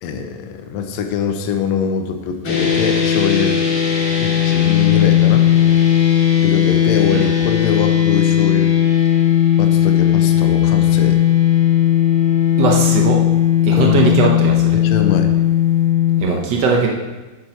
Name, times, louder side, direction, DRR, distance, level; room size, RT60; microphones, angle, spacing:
voice 1, 0.0-3.6 4.2-5.5 6.4-8.7 9.6-11.2 13.7-14.3 14.7-15.3, left 6 dB, 70° left, 6 dB, 2.0 m, -23 dB
sound 1, 2.4-16.2, left 10 dB, 45° left, 2.5 m, -15 dB
voice 2, 12.6-13.2 13.6-14.8 16.2-16.9, right 4 dB, 85° right, 1 dB, 0.9 m, -18 dB
11.0 x 7.5 x 4.4 m, 1.2 s
omnidirectional pair, 3.4 m